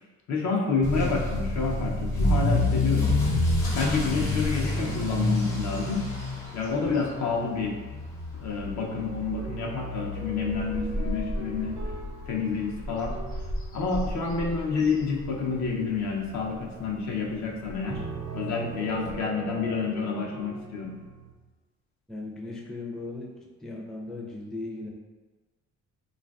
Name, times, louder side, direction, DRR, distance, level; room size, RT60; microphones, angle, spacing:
voice 1, 0.3-3.2 3.7-6.0 6.5-7.7 8.4-11.8 12.3-13.1 13.7-18.0 18.3-20.9, left 4 dB, 65° left, -1 dB, 0.6 m, -29 dB
Motor vehicle (road) / Accelerating revving vroom, 0.8-15.7 16.0-16.4 16.9-17.0 17.3-17.4 17.7-17.8 19.1-19.2, left 2 dB, 85° left, 1.1 m, -29 dB
sound 1, 9.4-13.9 14.5-14.9 17.8-21.3, right 3 dB, 70° right, 0.5 m, -41 dB
voice 2, 22.1-23.3 23.6-24.9, left 2 dB, ahead, -3 dB, 0.4 m, -37 dB
3.2 x 2.4 x 2.3 m, 1.3 s
cardioid pair, 90°, 30 cm